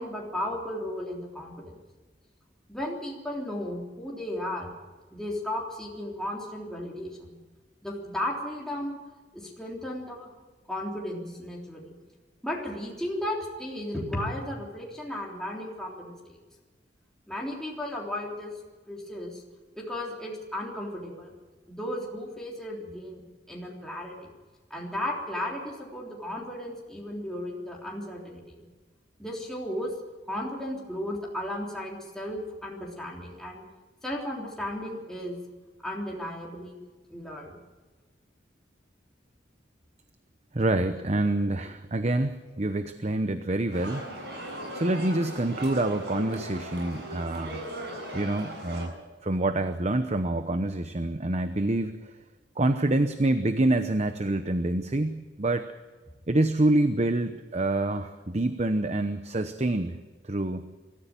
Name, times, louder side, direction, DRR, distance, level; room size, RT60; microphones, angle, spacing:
voice 1, 0.0-1.8 2.7-4.7 5.1-7.4 7.8-9.0 9.3-10.3 10.7-12.0 12.4-16.4 17.3-18.5 18.9-19.4 19.8-21.3 21.7-23.2 23.5-24.3 24.7-28.6 29.2-29.9 30.3-33.6 34.0-35.4 35.8-36.8 37.1-37.6, left 1 dB, 5° left, -3 dB, 3.5 m, -35 dB
voice 2, 40.5-44.0 44.7-47.7 48.1-48.9 49.2-52.0 52.6-55.7 56.3-60.0 60.2-60.6, right 2 dB, 35° right, 9 dB, 0.9 m, -26 dB
sound 1, 43.7-48.8, right 1 dB, 65° right, 7.6 m, -38 dB
24.0 x 14.5 x 7.4 m, 1.3 s
head